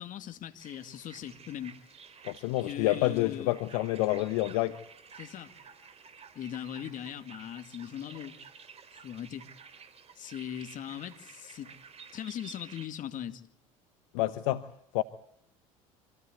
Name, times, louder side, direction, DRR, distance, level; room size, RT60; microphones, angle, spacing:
voice 1, 0.0-1.8 2.6-3.5 5.2-5.5 6.3-8.4 9.0-9.5 10.2-11.7 12.1-13.4, left 10 dB, 50° left, 2.2 m, -40 dB
sound 1, 0.6-12.9, right 6 dB, 35° right, 3.9 m, -52 dB
voice 2, 2.2-4.8 14.1-14.6 14.9-15.0, left 17 dB, 70° left, 1.0 m, -28 dB
26.5 x 16.0 x 8.0 m
hypercardioid pair, 75°, 17 cm